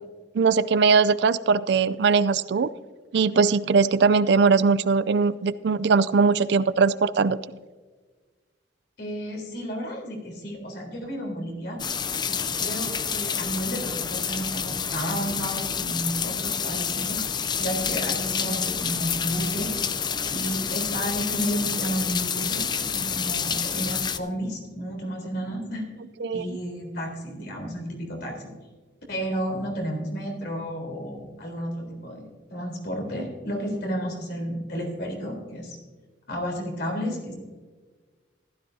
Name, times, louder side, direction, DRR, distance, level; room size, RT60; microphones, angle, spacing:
voice 1, 0.3-2.7 3.1-7.4 26.2-26.6, right 5 dB, 65° right, 15 dB, 0.4 m, -20 dB
voice 2, 9.0-11.8 12.3-17.2 17.6-19.8 20.3-25.9 26.3-28.4 29.1-35.8 36.3-37.4, equal, 65° left, 0 dB, 3.8 m, -32 dB
sound 1, 11.8-24.2, left 7 dB, 25° left, 0.5 m, -28 dB
15.0 x 13.0 x 2.7 m, 1.4 s
head